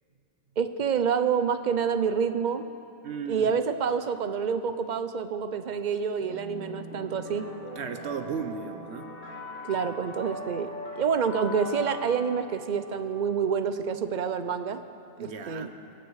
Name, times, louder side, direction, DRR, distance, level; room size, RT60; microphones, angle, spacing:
voice 1, 0.6-2.7 3.3-7.4 9.7-10.7 11.0-14.8 15.2-15.7, right 6 dB, 50° right, 10 dB, 0.8 m, -27 dB
voice 2, 3.0-3.6 7.8-9.1 15.2-15.8, right 6 dB, 85° right, 8 dB, 1.2 m, -35 dB
sound 1, 6.2-13.2, left 1 dB, 10° left, 2.6 m, -41 dB
23.0 x 7.8 x 6.5 m, 2.9 s
omnidirectional pair, 1.1 m